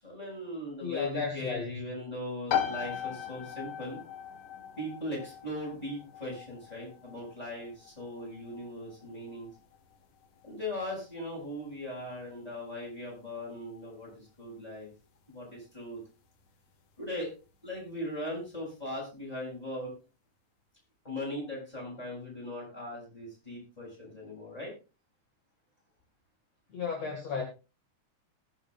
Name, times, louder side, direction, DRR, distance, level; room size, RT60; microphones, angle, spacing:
voice 1, 0.0-4.0 4.8-9.5 10.4-14.9 15.3-16.0 17.0-17.3 17.6-19.9 21.0-24.7, left 1 dB, 10° left, 7.2 m, -39 dB
voice 2, 0.8-1.8 26.7-27.4, left 5 dB, 55° left, 3.1 m, -34 dB
sound 1, 2.5-17.0, left 9 dB, 75° left, 2.7 m, -40 dB
20.5 x 7.7 x 2.5 m
omnidirectional pair, 3.7 m